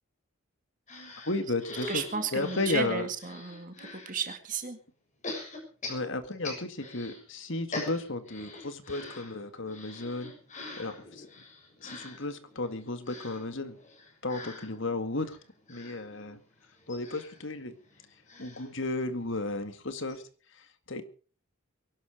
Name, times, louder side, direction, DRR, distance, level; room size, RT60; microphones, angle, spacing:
sound 1, 0.9-4.1 5.2-7.2 7.5-19.4 19.8-19.9 20.1-20.2, left 2 dB, 35° left, 6.8 m, -44 dB
voice 1, 1.2-3.1 5.9-10.3 10.8-11.3 11.8-13.8 14.2-15.4 15.7-16.4 16.9-17.7 18.4-20.2 20.5-21.0, left 2 dB, 60° left, 10 dB, 2.0 m, -34 dB
voice 2, 1.9-4.8, right 5 dB, 35° right, 7 dB, 2.0 m, -34 dB
22.5 x 12.0 x 5.1 m, 0.39 s
head